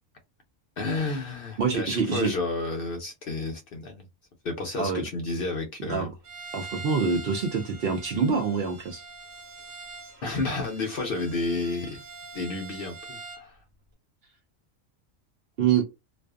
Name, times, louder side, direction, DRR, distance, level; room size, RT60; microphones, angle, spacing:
voice 1, 0.8-4.0 4.4-6.1 10.2-12.0 12.3-13.6, left 3 dB, 60° left, 0.7 m, -31 dB
voice 2, 1.6-2.3 4.8-5.0 5.8-6.1 6.5-9.0 15.6-15.8, right 6 dB, 60° right, 0.7 m, -26 dB
Bowed string instrument, 6.2-13.5, right 3 dB, 90° right, 1.3 m, -44 dB
2.4 x 2.3 x 2.3 m
omnidirectional pair, 1.3 m